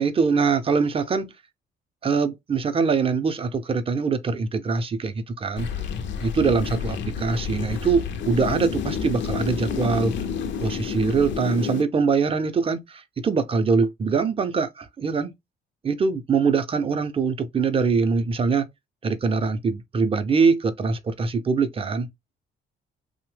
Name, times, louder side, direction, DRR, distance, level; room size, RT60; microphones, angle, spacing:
voice 1, 0.0-1.3 2.0-5.7 6.2-10.1 10.6-15.3 15.8-18.7 19.0-22.1, right 5 dB, 30° right, 0.5 m, -23 dB
sound 1, 5.6-11.8, left 7 dB, 65° left, 0.5 m, -29 dB
2.8 x 2.1 x 3.1 m
cardioid pair, 90°, 20 cm